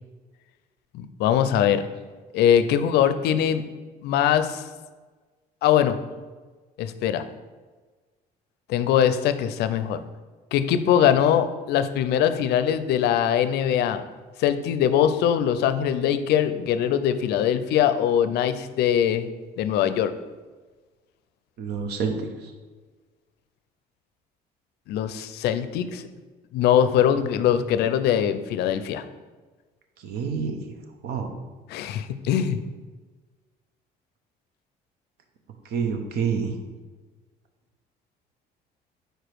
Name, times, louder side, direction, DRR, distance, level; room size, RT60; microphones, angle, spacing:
voice 1, 0.9-1.8 2.3-3.6 4.0-4.6 5.6-6.0 6.8-7.2 8.7-10.0 10.5-14.0 14.4-19.3 19.6-20.1 24.9-26.0 26.5-29.0 31.7-32.6, left 9 dB, 75° left, 11 dB, 0.4 m, -22 dB
voice 2, 21.6-22.1 30.0-30.5 31.0-31.3 35.7-36.5, right 6 dB, 70° right, 5 dB, 0.9 m, -27 dB
5.0 x 4.5 x 4.6 m, 1.3 s
cardioid pair, 110°, 17 cm